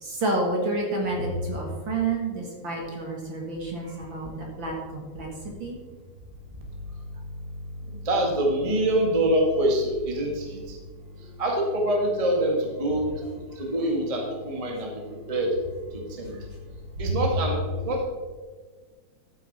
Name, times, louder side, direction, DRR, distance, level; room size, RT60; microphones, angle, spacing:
voice 1, 0.0-5.8 11.2-11.4 16.3-16.4 17.0-17.2, right 2 dB, 45° right, -1 dB, 2.2 m, -29 dB
voice 2, 7.9-10.8 11.4-13.0 13.5-14.9 15.3-15.5 15.9-16.3 17.0-17.6 17.8-18.0, right 1 dB, 15° right, -1 dB, 1.5 m, -25 dB
13.5 x 8.6 x 4.3 m, 1.4 s
omnidirectional pair, 3.5 m